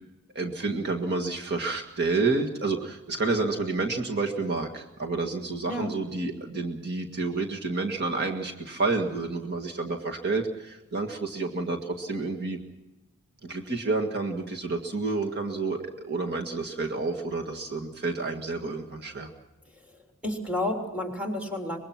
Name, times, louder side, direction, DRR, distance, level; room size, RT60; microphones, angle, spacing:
voice 1, 0.4-12.6 13.4-19.3, right 3 dB, 50° right, 2 dB, 1.8 m, -29 dB
voice 2, 19.7-21.8, left 1 dB, 5° right, 2 dB, 3.3 m, -32 dB
24.5 x 21.5 x 6.0 m, 1.0 s
head